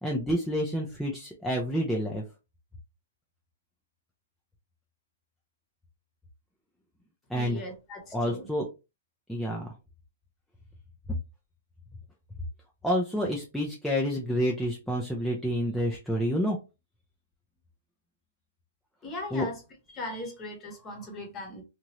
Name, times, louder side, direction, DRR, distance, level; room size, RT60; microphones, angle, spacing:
voice 1, 0.0-2.2 7.3-7.6 8.1-8.7 9.3-9.7 12.8-16.6 19.3-19.5, equal, ahead, 0.4 m, -28 dB
voice 2, 7.3-8.5 19.0-19.6 19.9-21.6, left 1 dB, 20° left, 1.0 m, -39 dB
2.9 x 2.5 x 2.9 m
hypercardioid pair, 155°, 0 cm